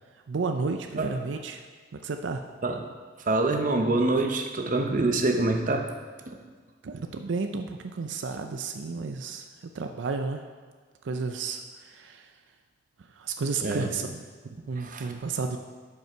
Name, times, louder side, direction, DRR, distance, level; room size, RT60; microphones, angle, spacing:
voice 1, 0.3-1.7 1.9-2.4 6.8-10.5 11.0-12.3 13.0-15.6, right 4 dB, 85° right, 6 dB, 0.5 m, -32 dB
voice 2, 3.3-5.9 13.6-13.9 14.8-15.1, right 2 dB, 45° right, 4 dB, 0.8 m, -25 dB
11.0 x 5.5 x 4.5 m, 1.5 s
head